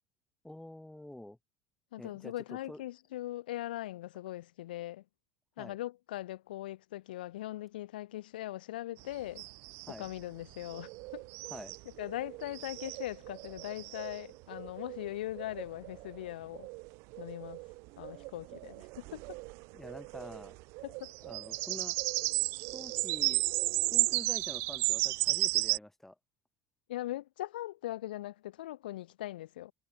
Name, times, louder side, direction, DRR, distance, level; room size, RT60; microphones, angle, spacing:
voice 1, 0.4-1.4 2.0-2.3 2.7-2.8 5.6-5.8 9.9-10.1 11.5-11.8 19.7-20.6 21.2-22.0 22.6-23.4 23.9-26.2, left 1 dB, 5° left, 1.1 m, -47 dB
voice 2, 1.9-5.0 5.6-9.5 10.0-11.2 12.0-16.7 17.2-17.6 18.0-19.2 20.8-21.1 26.9-29.7, left 15 dB, 80° left, 1.2 m, -40 dB
sound 1, 9.0-9.1 9.4-10.1 10.5-25.8, right 28 dB, 65° right, 0.7 m, -34 dB
hypercardioid pair, 75°, 5 cm